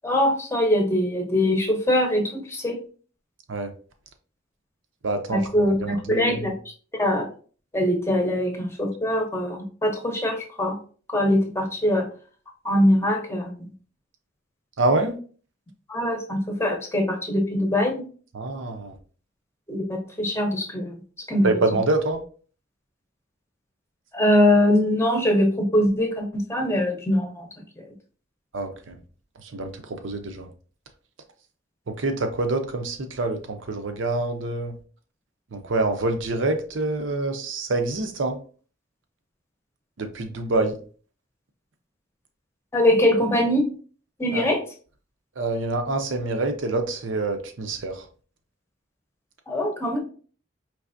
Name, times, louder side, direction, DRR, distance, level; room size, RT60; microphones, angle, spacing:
voice 1, 0.0-2.8 5.3-6.5 7.0-7.3 7.7-10.8 11.1-12.1 12.6-13.7 15.9-18.0 19.7-21.0 21.3-21.5 24.1-27.5 42.7-43.7 44.2-44.6 49.5-50.0, left 1 dB, 15° left, 2 dB, 0.7 m, -22 dB
voice 2, 5.0-5.5 5.8-6.4 14.8-15.2 18.3-18.9 21.4-22.2 28.5-28.9 29.5-30.5 31.9-34.7 35.5-38.4 40.0-40.7 44.3-44.5 45.4-48.0, right 2 dB, 80° right, 7 dB, 0.7 m, -26 dB
4.6 x 3.2 x 2.6 m, 0.41 s
head